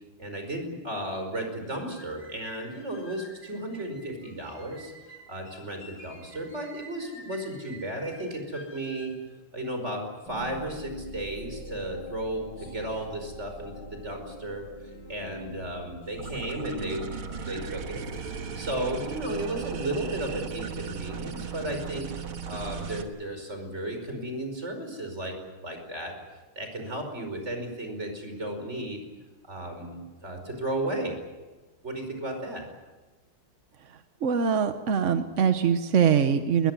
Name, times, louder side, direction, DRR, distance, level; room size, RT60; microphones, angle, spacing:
voice 1, 0.2-4.9 5.3-9.1 9.5-14.7 15.1-18.0 18.5-22.1 22.5-25.4 25.6-26.1 26.6-29.0 29.4-31.2 31.8-32.6, right 1 dB, 30° right, 5 dB, 5.4 m, -34 dB
sound 1, 1.4-9.2, right 1 dB, 85° left, 7.3 m, -50 dB
sound 2, 10.3-21.8, equal, 50° left, 8.3 m, -45 dB
sound 3, 16.2-23.0, right 6 dB, 70° right, 2.4 m, -36 dB
voice 2, 33.9-36.7, right 7 dB, 50° right, 8 dB, 0.9 m, -23 dB
21.5 x 21.0 x 9.7 m, 1.2 s
omnidirectional pair, 2.4 m